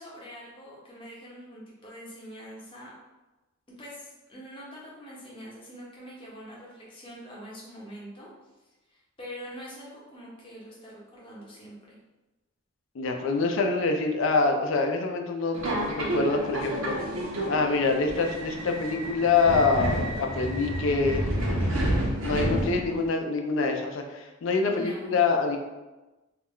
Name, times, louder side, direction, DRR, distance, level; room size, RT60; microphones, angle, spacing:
voice 1, 0.0-2.9 3.8-8.3 8.9-12.0 24.6-25.1, equal, 25° left, -5 dB, 0.7 m, -44 dB
voice 2, 12.9-17.0 17.5-21.6 22.2-25.6, left 4 dB, 65° left, 4 dB, 0.4 m, -26 dB
Subway metro underground, 15.5-23.1, right 1 dB, 70° right, 0.6 m, -29 dB
2.3 x 2.2 x 3.5 m, 1.1 s
head